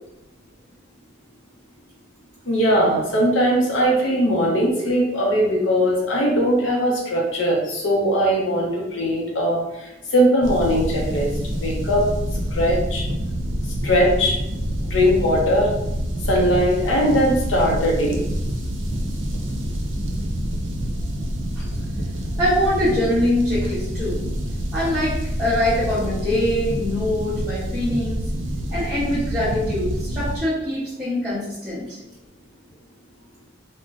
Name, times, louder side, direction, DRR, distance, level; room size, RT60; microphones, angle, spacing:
voice 1, 2.5-11.3 11.6-12.0 12.5-13.0 13.8-14.3 14.9-15.7 16.2-18.2, equal, 90° left, -2 dB, 0.6 m, -20 dB
sound 1, 10.4-30.4, equal, 90° right, 0.5 m, -27 dB
voice 2, 22.4-24.2 24.7-28.2 28.7-32.0, left 1 dB, 5° right, -14 dB, 0.9 m, -23 dB
3.7 x 2.1 x 2.4 m, 0.91 s
head